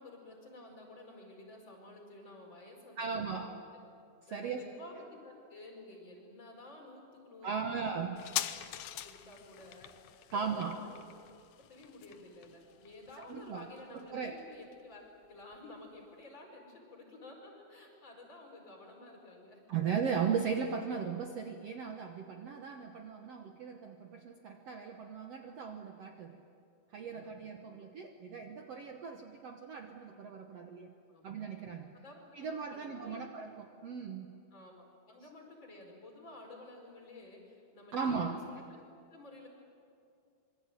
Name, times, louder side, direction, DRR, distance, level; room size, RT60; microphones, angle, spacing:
voice 1, 0.0-3.6 4.3-8.3 8.8-11.0 11.7-19.6 26.9-27.6 28.2-28.5 28.8-28.9 31.1-31.4 31.9-33.2 34.5-38.6 39.1-39.5, left 2 dB, 25° left, 0 dB, 5.4 m, -52 dB
voice 2, 3.0-3.5 4.3-4.6 7.4-8.2 10.3-10.8 13.2-13.6 13.9-14.4 19.7-26.4 26.9-30.9 31.2-31.9 32.3-34.3 37.9-38.4, right 6 dB, 75° right, 4 dB, 1.4 m, -37 dB
sound 1, 8.2-15.3 15.5-15.6, left 12 dB, 85° left, 1.7 m, -43 dB
26.0 x 23.5 x 9.2 m, 2.4 s
omnidirectional pair, 4.8 m